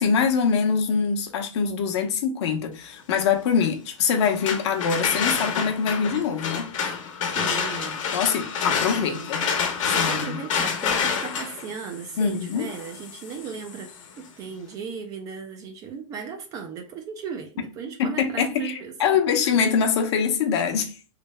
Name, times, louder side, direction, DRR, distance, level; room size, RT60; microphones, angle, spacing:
voice 1, 0.0-6.7 8.1-9.5 10.0-10.4 12.2-12.7 18.0-20.9, left 6 dB, 55° left, 0.8 m, -24 dB
sound 1, 4.2-14.0, left 6 dB, 80° left, 1.0 m, -28 dB
voice 2, 7.3-8.1 9.0-9.5 9.9-13.9 14.2-18.9 19.3-19.4, right 6 dB, 20° right, 0.4 m, -37 dB
3.3 x 3.2 x 3.1 m
supercardioid pair, 165°, 16 cm